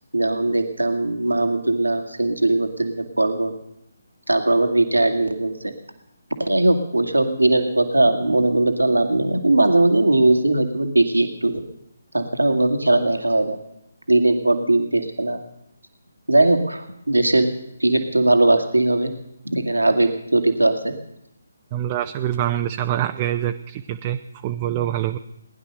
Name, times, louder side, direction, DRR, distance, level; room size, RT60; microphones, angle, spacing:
voice 1, 0.1-3.5 4.3-5.7 6.4-11.6 12.1-13.6 14.1-15.4 16.3-17.5 17.8-19.1 19.5-20.9, right 2 dB, 80° right, 6 dB, 1.9 m, -19 dB
voice 2, 21.7-25.2, right 11 dB, 25° right, 6 dB, 0.7 m, -25 dB
20.0 x 10.5 x 6.6 m, 0.79 s
figure-of-eight pair, 145°, 0 cm